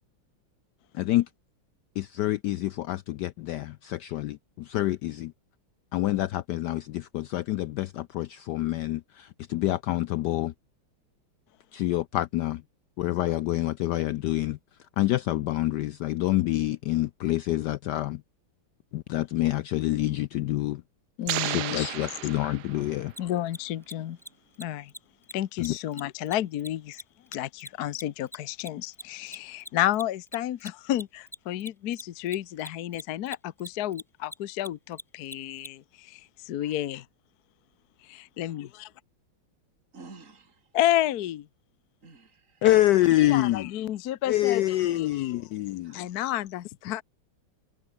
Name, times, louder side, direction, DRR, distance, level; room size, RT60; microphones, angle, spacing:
voice 1, 0.9-1.3 2.0-5.3 5.9-10.5 11.7-12.6 13.0-14.6 15.0-18.2 18.9-20.8 21.4-23.1 25.6-25.8 42.6-43.7 44.3-46.0, left 15 dB, 85° left, 0.9 m, -27 dB
voice 2, 21.2-22.2 23.2-24.2 24.6-24.9 25.3-27.0 27.3-37.0 38.0-38.9 40.7-41.5 43.2-45.3 45.9-47.0, left 13 dB, 60° left, 1.1 m, -31 dB
sound 1, 21.3-23.1, right 13 dB, 65° right, 1.0 m, -33 dB
Mechanisms, 23.1-23.2 23.5-23.6 23.8-23.9 24.2-24.3 24.5-24.6 24.9-25.0 25.2-25.3 25.6-28.4 28.6-35.7, equal, ahead, 4.3 m, -42 dB
voice 3, 39.9-40.7 42.0-42.6 45.8-46.1, right 3 dB, 35° right, 3.8 m, -50 dB
omnidirectional pair, 2.4 m